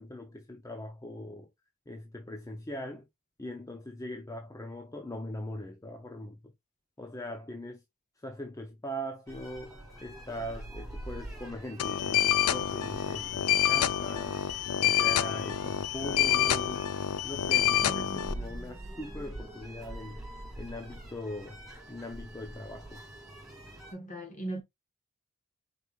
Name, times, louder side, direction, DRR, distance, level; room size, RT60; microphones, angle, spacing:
voice 1, 0.0-1.5 1.9-3.1 3.4-6.5 7.0-7.8 8.2-14.4 14.8-16.9 17.2-20.2 20.6-21.6 21.9-23.0, left 1 dB, 15° left, 0.6 m, -41 dB
sound 1, 9.3-23.9, right 1 dB, ahead, 2.5 m, -45 dB
sound 2, 11.8-18.3, left 11 dB, 75° left, 0.5 m, -27 dB
voice 2, 17.8-18.3 23.9-24.6, right 2 dB, 35° left, 1.5 m, -39 dB
4.9 x 4.6 x 2.4 m
head